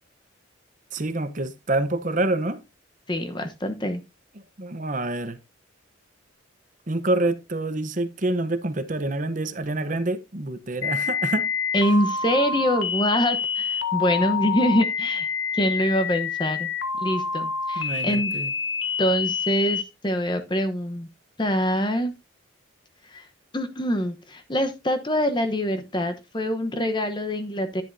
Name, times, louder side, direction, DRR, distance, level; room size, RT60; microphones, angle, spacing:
voice 1, 0.9-2.6 4.6-5.4 6.9-11.5 17.8-18.5, right 2 dB, 40° right, 0.8 m, -27 dB
voice 2, 3.1-4.0 11.7-15.3 15.5-16.7 17.0-18.3 19.0-21.1 21.4-22.1 23.1-23.2 23.5-27.8, equal, 20° left, 0.9 m, -25 dB
sound 1, 10.8-19.8, left 6 dB, 75° left, 1.5 m, -27 dB
10.5 x 10.5 x 2.7 m
head